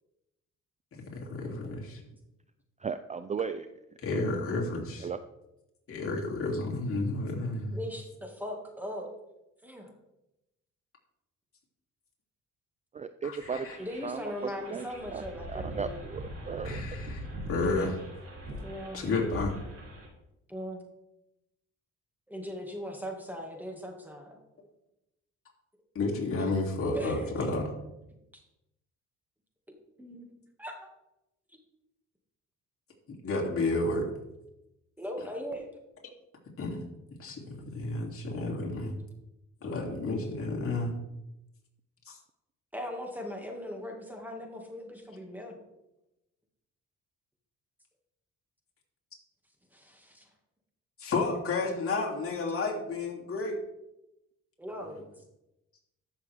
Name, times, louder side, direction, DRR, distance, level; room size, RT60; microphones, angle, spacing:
voice 1, 0.9-2.0 4.0-5.1 5.9-7.7 13.2-13.8 16.6-17.2 17.5-18.0 18.9-19.5 25.9-27.7 33.2-34.1 36.6-36.8 37.2-38.9 39.6-40.9 42.1-42.2 51.0-53.6, left 2 dB, 45° left, -2 dB, 3.0 m, -31 dB
voice 2, 2.8-3.7 5.0-5.2 12.9-13.7 14.0-14.2 14.7-14.8 15.1-15.2 15.5-16.8, right 6 dB, 25° right, 11 dB, 0.4 m, -35 dB
voice 3, 7.7-9.1 9.6-9.9 13.8-16.1 18.6-19.0 20.5-20.8 22.3-24.4 26.9-27.5 28.3-28.4 30.0-30.3 30.6-30.9 35.0-35.7 42.7-45.6 49.7-50.3 54.6-55.0, equal, 5° right, 1 dB, 2.1 m, -39 dB
sound 1, 13.4-20.1, right 1 dB, 50° right, 3.4 m, -41 dB
14.0 x 6.6 x 3.6 m, 0.91 s
cardioid pair, 90°, 30 cm